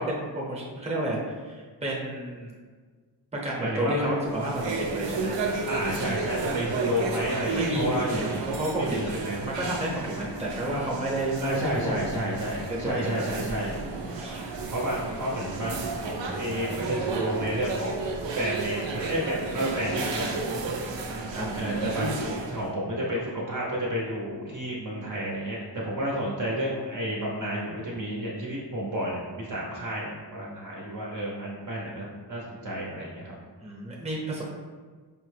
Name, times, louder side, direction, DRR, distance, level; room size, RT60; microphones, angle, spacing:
voice 1, 0.0-2.5 3.3-5.4 7.5-9.2 9.4-12.0 12.7-13.8 14.1-14.5 20.7-21.6 33.6-34.4, right 1 dB, 15° right, -4 dB, 0.8 m, -31 dB
voice 2, 3.6-4.3 5.7-8.4 8.8-9.5 11.4-13.8 14.7-18.1 18.4-20.3 21.5-33.3, equal, 45° right, -4 dB, 0.7 m, -31 dB
sound 1, 4.2-22.7, right 3 dB, 85° right, 0.6 m, -32 dB
4.9 x 2.1 x 3.2 m, 1.5 s
wide cardioid pair, 130°, 44 cm